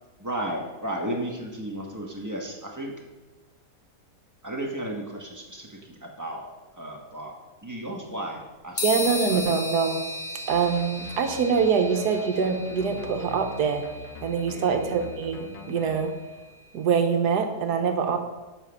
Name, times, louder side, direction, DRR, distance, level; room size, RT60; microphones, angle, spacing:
voice 1, 0.2-2.9 4.4-6.5 6.7-7.3 7.6-9.4 14.5-14.7, right 1 dB, 15° right, -1 dB, 1.1 m, -34 dB
sound 1, 8.8-16.4, left 3 dB, 40° left, 0.8 m, -36 dB
voice 2, 8.8-10.0 10.5-13.8 14.2-16.1 16.7-18.2, right 6 dB, 80° right, 5 dB, 1.4 m, -24 dB
sound 2, 10.5-16.1, left 5 dB, 80° left, 1.3 m, -43 dB
7.3 x 5.8 x 5.7 m, 1.1 s
omnidirectional pair, 1.7 m